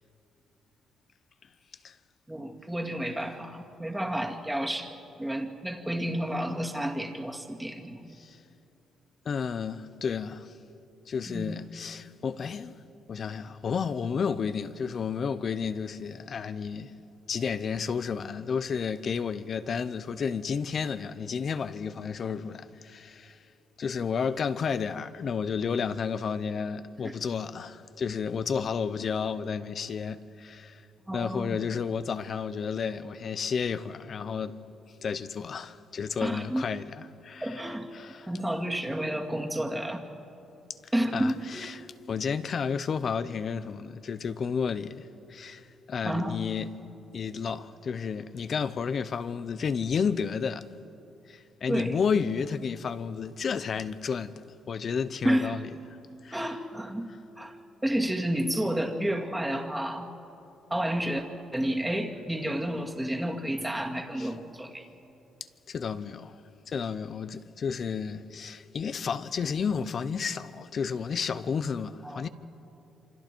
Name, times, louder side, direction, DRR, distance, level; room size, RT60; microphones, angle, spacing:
voice 1, 2.3-8.1 11.3-11.6 27.0-27.2 31.1-31.6 36.2-36.7 37.4-37.9 38.2-40.0 40.9-41.7 46.0-46.4 51.7-51.9 55.2-55.6 56.3-57.1 57.4-57.6 57.8-60.1 60.7-61.3 61.5-64.9 72.0-72.3, right 1 dB, 10° right, 2.2 m, -30 dB
voice 2, 9.2-10.5 11.1-12.8 13.1-16.9 17.3-23.4 23.8-30.8 31.1-34.5 35.0-37.6 37.9-38.3 40.8-41.8 42.1-46.7 47.1-50.7 51.3-55.7 56.2-56.4 64.2-64.3 65.7-66.4 66.7-72.3, left 6 dB, 50° left, 0.9 m, -32 dB
27.5 x 25.5 x 4.6 m
cardioid pair, 90°, 0 cm